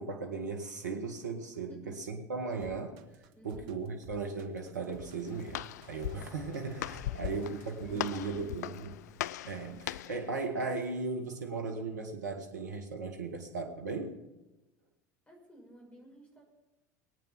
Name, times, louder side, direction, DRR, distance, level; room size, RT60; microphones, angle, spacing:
voice 1, 0.0-3.0 3.4-8.9 9.4-14.2, right 4 dB, 90° right, 4 dB, 1.7 m, -37 dB
sound 1, 2.6-8.3, right 8 dB, 60° right, 1.6 m, -55 dB
voice 2, 3.3-3.7 7.0-7.6 7.8-8.8 15.3-16.4, right 1 dB, 15° left, 0 dB, 6.4 m, -54 dB
Walk footsteps, 4.9-10.3, left 13 dB, 80° left, 0.4 m, -40 dB
22.0 x 9.0 x 5.9 m, 1.0 s
hypercardioid pair, 75°, 9 cm